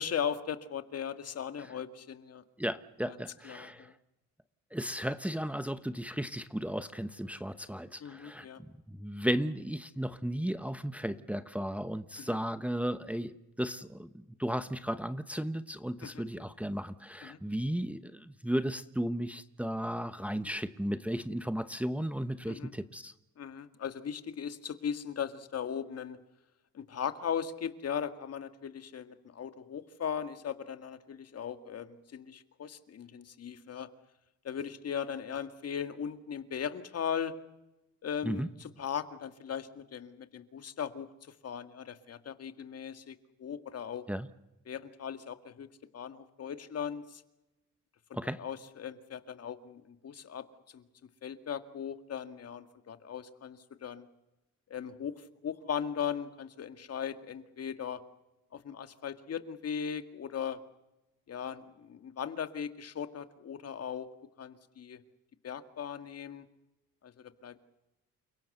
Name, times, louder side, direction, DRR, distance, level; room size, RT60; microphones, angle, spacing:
voice 1, 0.0-2.4 3.4-3.9 8.0-8.6 12.2-12.4 16.0-16.3 17.2-17.4 22.5-22.7 23.4-26.2 26.7-33.9 34.4-37.3 38.0-41.1 41.4-44.1 44.7-45.7 45.9-47.2 48.4-50.8 51.2-54.1 54.7-58.0 58.5-60.6 61.3-64.1 64.4-65.0 65.4-66.5 67.0-67.1 67.4-67.6, left 8 dB, 55° left, 10 dB, 2.1 m, -38 dB
voice 2, 2.6-3.9 4.7-8.5 8.9-23.1 38.2-38.5 44.1-44.3 48.1-48.4, equal, 5° right, 11 dB, 1.1 m, -35 dB
29.5 x 17.0 x 8.0 m, 0.96 s
cardioid pair, 90°, 30 cm